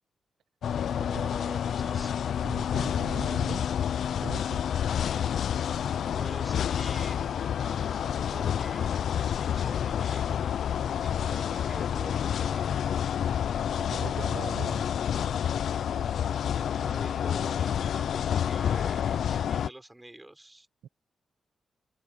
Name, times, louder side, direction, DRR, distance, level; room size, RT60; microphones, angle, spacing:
sound 1, 0.6-19.7, left 9 dB, 75° left, 0.5 m, -29 dB
voice 1, 0.9-2.2 5.1-5.2 6.1-10.6 11.0-12.8 16.6-20.7, right 1 dB, 15° right, 4.0 m, -46 dB
voice 2, 2.4-3.7 4.2-4.6 11.2-11.4 13.7-14.8 20.8-20.9, right 9 dB, 90° right, 1.3 m, -40 dB
cardioid pair, 85°, 0 cm